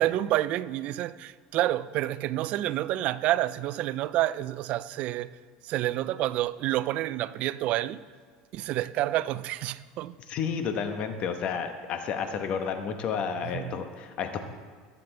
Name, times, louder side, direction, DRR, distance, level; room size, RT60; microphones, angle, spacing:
voice 1, 0.0-5.3 5.6-8.0 8.5-10.2 13.5-13.8, right 14 dB, 50° right, 0.3 m, -28 dB
voice 2, 10.3-14.4, left 6 dB, 45° left, 1.0 m, -31 dB
19.0 x 6.7 x 3.3 m
supercardioid pair, 135°, 3 cm